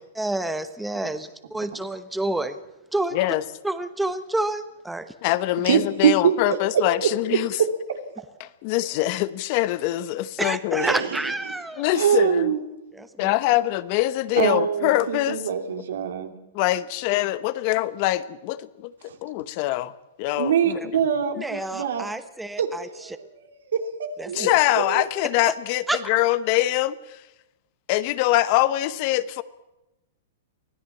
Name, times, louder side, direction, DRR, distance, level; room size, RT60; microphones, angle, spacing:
voice 1, 0.1-2.6 2.9-3.2 3.6-5.1 10.4-11.8 12.9-13.3 21.3-22.9 24.2-24.5 25.9-26.0, right 2 dB, 5° right, 1.1 m, -29 dB
voice 2, 3.1-3.4 5.2-7.6 8.4-10.9 11.8-12.5 13.2-15.4 16.5-18.9 19.2-19.9 20.2-20.9 24.3-27.2 27.9-29.4, left 16 dB, 45° left, 1.0 m, -24 dB
voice 3, 5.7-6.6 7.0-7.4 10.8-11.2 11.9-12.6 14.4-16.3 19.0-19.2 20.4-22.0 22.6-25.0, right 8 dB, 80° right, 3.1 m, -24 dB
24.5 x 16.5 x 7.3 m
hypercardioid pair, 135°, 0 cm